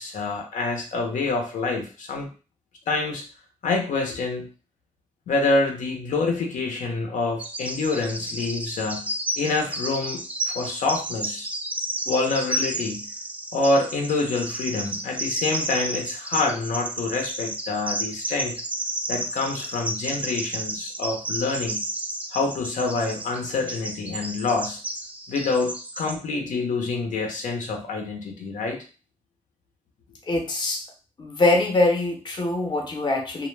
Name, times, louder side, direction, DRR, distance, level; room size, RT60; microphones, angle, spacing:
voice 1, 0.0-2.3 2.9-3.2 3.6-4.5 5.3-11.5 12.1-13.1 13.5-18.6 19.1-21.8 22.3-24.8 25.3-28.8, left 3 dB, 80° left, 2 dB, 0.6 m, -26 dB
Bird vocalization bird call bird song, 7.4-26.2, right 1 dB, 10° right, 0.3 m, -32 dB
voice 2, 30.3-30.8 31.2-33.5, left 2 dB, 35° left, 2 dB, 0.6 m, -23 dB
2.2 x 2.1 x 3.1 m, 0.34 s
wide cardioid pair, 115°, 13 cm